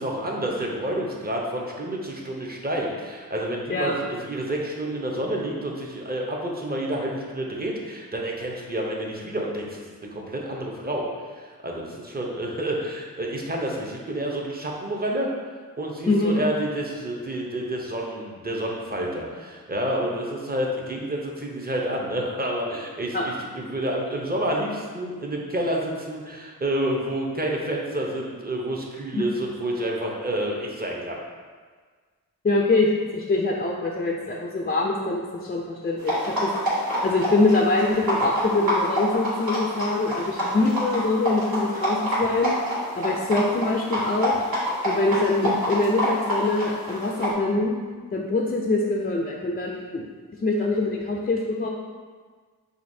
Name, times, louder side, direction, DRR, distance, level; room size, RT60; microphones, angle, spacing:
voice 1, 0.0-11.1 11.3-15.3 15.8-31.2, right 1 dB, 25° right, -1 dB, 0.7 m, -29 dB
voice 2, 16.1-16.4 23.1-23.3 29.1-29.2 32.4-36.5 37.0-42.5 42.9-44.3 44.8-47.8 48.1-50.1 50.4-51.7, left 2 dB, 25° left, -1 dB, 0.4 m, -24 dB
sound 1, 36.0-47.3, equal, 75° right, 1.5 m, -27 dB
5.0 x 2.8 x 2.7 m, 1.5 s
wide cardioid pair, 75°, 36 cm